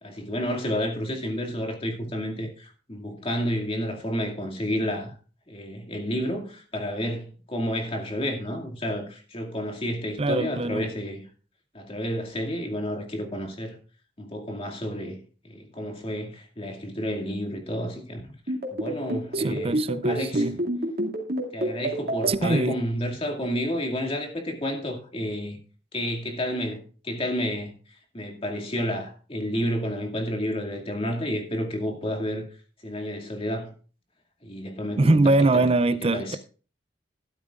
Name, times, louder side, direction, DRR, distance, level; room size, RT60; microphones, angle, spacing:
voice 1, 0.0-5.2 5.5-11.2 11.7-13.8 14.2-15.2 15.4-18.3 18.7-19.8 20.0-20.5 21.5-25.6 25.9-32.5 32.8-33.7 34.4-35.7 36.0-36.4, equal, 30° left, 2.3 m, -30 dB
voice 2, 10.2-10.8 19.3-20.6 22.3-22.8 35.0-36.4, right 2 dB, 30° right, 0.5 m, -22 dB
sound 1, 18.5-22.3, right 1 dB, 55° right, 2.5 m, -27 dB
12.5 x 12.5 x 2.5 m
head